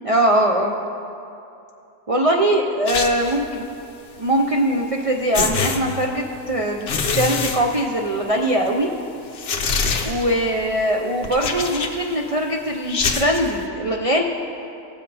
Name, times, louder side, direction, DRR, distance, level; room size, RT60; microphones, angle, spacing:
voice 1, 0.0-0.7 2.1-3.7 4.2-8.9 10.0-14.2, right 1 dB, 65° right, 1 dB, 0.3 m, -21 dB
sound 1, 2.9-3.5 4.8-4.9 5.3-6.4 6.8-8.3 8.7-8.8 9.3-10.5 11.2-12.2 12.8-13.5, left 5 dB, 50° left, 0.9 m, -25 dB
17.5 x 7.5 x 4.2 m, 2.7 s
omnidirectional pair, 1.6 m